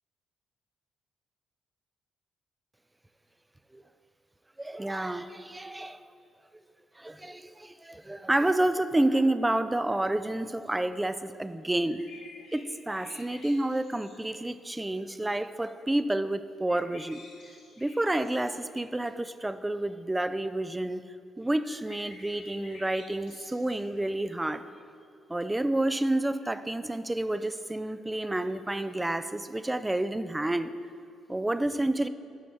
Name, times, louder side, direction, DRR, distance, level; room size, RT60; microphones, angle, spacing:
voice 1, 4.6-6.0 7.0-12.0 12.5-17.2 17.8-21.0 21.4-24.7 25.3-30.7 31.3-32.1, right 1 dB, 10° right, 12 dB, 0.3 m, -29 dB
sound 1, 11.6-14.4 16.7-18.7 21.6-24.0 26.4-26.5, left 2 dB, 75° left, 1.6 m, -52 dB
9.1 x 6.5 x 3.5 m, 2.4 s
cardioid pair, 90°, 0 cm